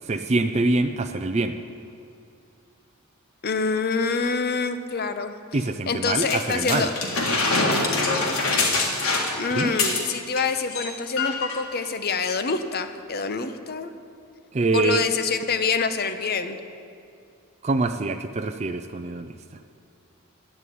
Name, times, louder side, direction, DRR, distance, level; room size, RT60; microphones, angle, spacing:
voice 1, 0.1-1.6 5.5-6.9 9.5-9.7 14.5-15.1 17.6-19.3, right 3 dB, 30° right, 6 dB, 0.4 m, -24 dB
voice 2, 3.4-5.3 5.9-6.9 9.4-13.9 14.7-16.6, left 4 dB, 45° left, 9 dB, 0.7 m, -26 dB
sound 1, 6.2-10.4 10.7-10.9 11.2-11.6 12.3-12.4, left 3 dB, 70° left, 1.9 m, -24 dB
11.5 x 8.3 x 9.2 m, 2.4 s
head